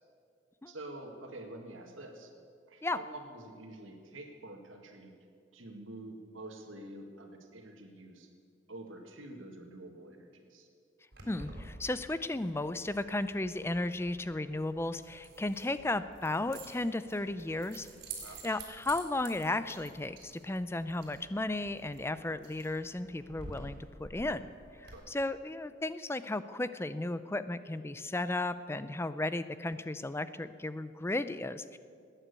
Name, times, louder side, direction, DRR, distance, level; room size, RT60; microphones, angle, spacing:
voice 1, 0.7-2.3 2.7-5.1 5.5-8.3 8.7-10.7 18.2-18.4 24.9-25.1, right 2 dB, 85° right, 3 dB, 1.9 m, -47 dB
Keys jangling, 11.1-24.9, right 3 dB, 50° right, 3.7 m, -50 dB
voice 2, 11.3-17.9 18.4-24.5 24.8-31.8, left 2 dB, 10° left, 13 dB, 0.4 m, -34 dB
19.5 x 9.1 x 8.3 m, 2.3 s
head